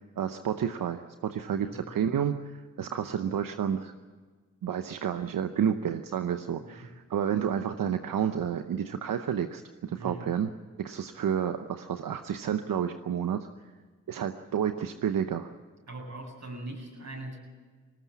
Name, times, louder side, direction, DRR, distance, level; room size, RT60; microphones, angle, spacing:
voice 1, 0.0-3.9 4.6-10.5 10.8-13.5 14.1-15.5, right 8 dB, 90° right, 8 dB, 0.8 m, -30 dB
voice 2, 15.9-17.4, right 2 dB, 55° right, 2 dB, 8.0 m, -41 dB
20.0 x 19.0 x 8.3 m, 1.5 s
cardioid pair, 45°, 32 cm